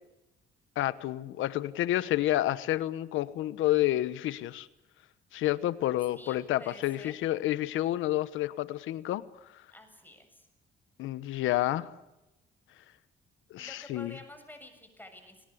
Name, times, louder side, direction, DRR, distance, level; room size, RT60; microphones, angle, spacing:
voice 1, 0.8-4.7 5.3-9.2 11.0-11.9 13.5-14.2, left 14 dB, 90° left, 16 dB, 1.2 m, -29 dB
voice 2, 6.1-7.1 9.7-10.5 13.6-15.4, left 1 dB, 10° left, 6 dB, 7.1 m, -50 dB
29.0 x 19.0 x 8.6 m, 0.95 s
cardioid pair, 90°, 20 cm